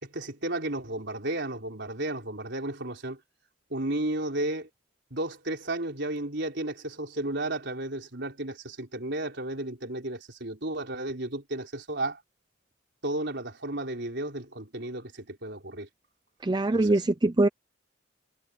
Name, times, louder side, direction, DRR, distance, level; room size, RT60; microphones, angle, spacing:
voice 1, 0.0-3.2 3.7-4.7 5.1-12.2 13.0-15.9 16.7-17.0, right 1 dB, 55° right, 4.5 m, -33 dB
voice 2, 16.4-17.5, right 2 dB, 20° right, 0.4 m, -23 dB
head